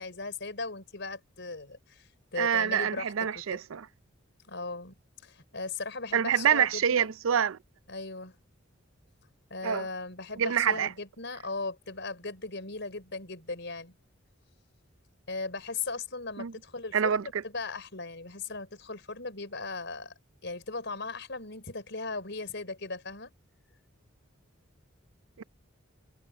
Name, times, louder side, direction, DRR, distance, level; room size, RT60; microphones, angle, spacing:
voice 1, 0.0-3.6 4.4-7.1 7.9-8.4 9.5-14.0 15.3-20.1 20.4-23.3, left 3 dB, 60° left, 5.4 m, -38 dB
voice 2, 2.4-3.9 6.1-7.6 9.6-9.9 10.4-10.9 16.4-16.5 16.9-17.2 25.4-25.5, right 8 dB, 80° right, 0.5 m, -26 dB
head